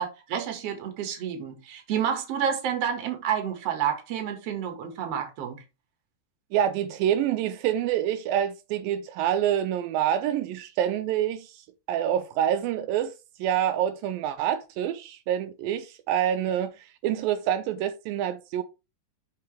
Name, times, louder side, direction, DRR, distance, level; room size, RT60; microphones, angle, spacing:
voice 1, 0.0-5.6, right 8 dB, 55° right, 2.2 m, -29 dB
voice 2, 6.5-11.5 11.9-13.1 13.4-16.7 17.0-18.6, right 10 dB, 85° right, 2.4 m, -26 dB
6.0 x 5.8 x 3.2 m
omnidirectional pair, 4.1 m